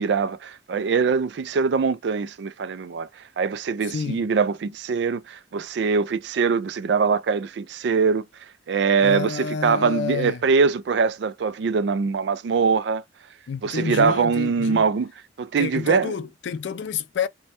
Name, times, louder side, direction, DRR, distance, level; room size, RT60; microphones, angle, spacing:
voice 1, 0.0-3.1 3.4-8.2 8.7-13.0 13.6-15.1 15.4-16.1, right 5 dB, 65° right, 0.3 m, -22 dB
voice 2, 3.9-4.2 9.0-10.4 13.5-14.9 15.6-17.3, left 6 dB, 70° left, 0.4 m, -29 dB
3.1 x 2.2 x 2.7 m
head